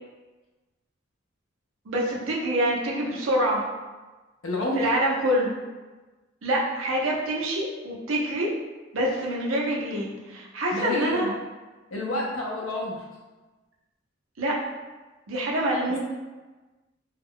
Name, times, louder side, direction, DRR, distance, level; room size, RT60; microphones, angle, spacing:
voice 1, 1.9-3.6 4.8-5.6 6.4-8.5 8.9-11.3 14.4-14.5 15.3-16.0, right 1 dB, 80° right, -3 dB, 0.6 m, -26 dB
voice 2, 4.4-4.9 10.7-11.3 11.9-13.1, left 1 dB, 85° left, -2 dB, 0.5 m, -29 dB
2.2 x 2.1 x 3.6 m, 1.2 s
head